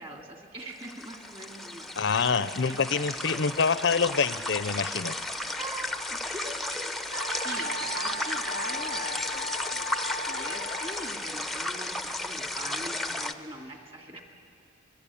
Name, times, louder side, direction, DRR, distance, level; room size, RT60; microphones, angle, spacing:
voice 1, 0.0-3.1 5.6-7.1 7.4-9.9 10.3-14.2, right 1 dB, 30° right, 2 dB, 2.6 m, -43 dB
sound 1, 0.6-13.3, left 2 dB, ahead, 0.6 m, -34 dB
voice 2, 2.0-5.2, left 5 dB, 65° left, 14 dB, 0.6 m, -26 dB
Wind instrument woodwind instrument, 7.1-11.2, left 1 dB, 85° right, 1.1 m, -37 dB
27.0 x 21.0 x 8.5 m, 2.5 s
head